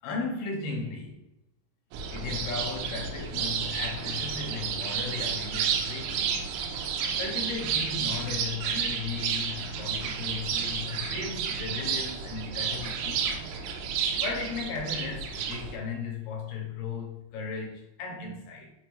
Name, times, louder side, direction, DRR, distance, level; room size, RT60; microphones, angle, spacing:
voice 1, 0.0-1.1 2.1-6.4 7.2-13.5 14.2-18.7, left 4 dB, 75° left, 2.4 m, -36 dB
sound 1, 1.9-15.8, right 6 dB, 90° right, 3.2 m, -31 dB
7.2 x 4.5 x 3.1 m
omnidirectional pair, 5.4 m